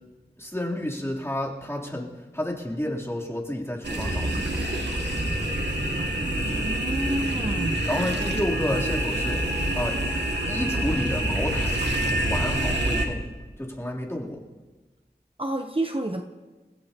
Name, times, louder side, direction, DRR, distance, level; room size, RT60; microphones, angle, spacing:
voice 1, 0.4-4.4 7.9-10.0 10.5-11.8 12.2-13.2 13.6-14.4, left 1 dB, 15° left, -4 dB, 3.5 m, -30 dB
sound 1, 3.8-13.1, right 1 dB, 80° right, 2.3 m, -26 dB
voice 2, 6.6-8.3 15.4-16.2, right 1 dB, 30° right, 4 dB, 1.0 m, -29 dB
29.0 x 16.0 x 3.0 m, 1.3 s
wide cardioid pair, 40°, 18 cm